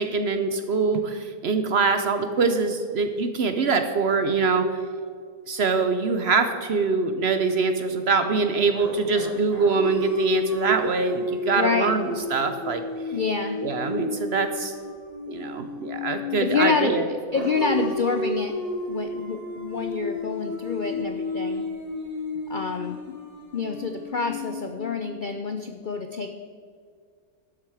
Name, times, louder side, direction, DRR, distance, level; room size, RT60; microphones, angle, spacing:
voice 1, 0.0-4.7 5.5-12.8 13.6-14.7 15.3-17.1, right 4 dB, 55° right, 8 dB, 0.8 m, -24 dB
sound 1, 8.7-16.8 17.3-25.4, left 1 dB, 25° right, 2.0 m, -32 dB
voice 2, 11.5-11.9 13.1-13.6 16.4-16.9 17.3-18.5 18.9-21.6 22.5-23.0 23.5-26.3, left 5 dB, 60° left, 5 dB, 0.5 m, -27 dB
12.0 x 7.6 x 4.8 m, 2.1 s
omnidirectional pair, 1.6 m